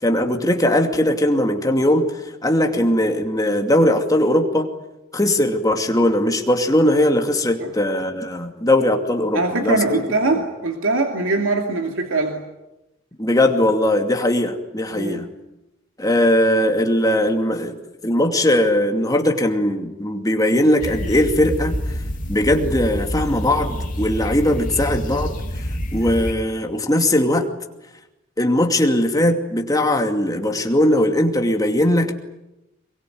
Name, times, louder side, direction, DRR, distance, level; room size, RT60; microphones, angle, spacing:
voice 1, 0.0-4.7 5.1-10.0 10.3-10.4 13.2-15.3 16.0-17.8 18.0-21.8 22.3-25.3 25.9-27.5 28.4-32.1, left 1 dB, 20° left, 4 dB, 2.5 m, -19 dB
voice 2, 9.3-12.4 14.9-15.2, right 2 dB, 85° right, 3 dB, 2.6 m, -22 dB
sound 1, 20.8-26.3, equal, 40° left, 3.1 m, -27 dB
24.0 x 23.0 x 9.5 m, 0.95 s
head